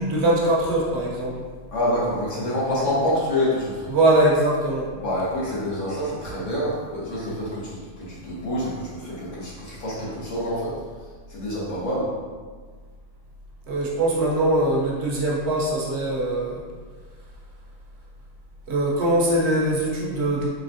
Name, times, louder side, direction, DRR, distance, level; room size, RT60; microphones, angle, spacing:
voice 1, 0.0-1.4 3.9-4.9 13.7-16.6 18.7-20.5, right 1 dB, 65° right, -4 dB, 1.1 m, -22 dB
voice 2, 1.7-3.9 5.0-10.7 11.3-12.1, left 1 dB, 85° left, -7 dB, 1.5 m, -27 dB
3.9 x 3.3 x 2.7 m, 1.5 s
omnidirectional pair, 1.3 m